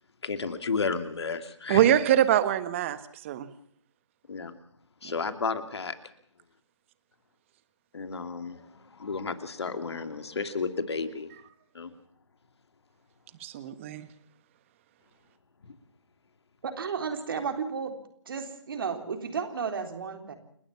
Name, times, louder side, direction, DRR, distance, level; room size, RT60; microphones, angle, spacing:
voice 1, 0.2-1.9 4.3-4.5 5.0-5.9 7.9-11.3 11.7-11.9 15.6-15.7, left 4 dB, 60° left, 10 dB, 2.6 m, -32 dB
voice 2, 1.7-3.5 13.4-14.1, right 11 dB, 25° right, 13 dB, 1.5 m, -24 dB
voice 3, 16.6-18.0 18.3-20.3, right 6 dB, 45° right, 7 dB, 3.7 m, -33 dB
29.5 x 12.0 x 7.2 m, 0.66 s
figure-of-eight pair, 150°, 16 cm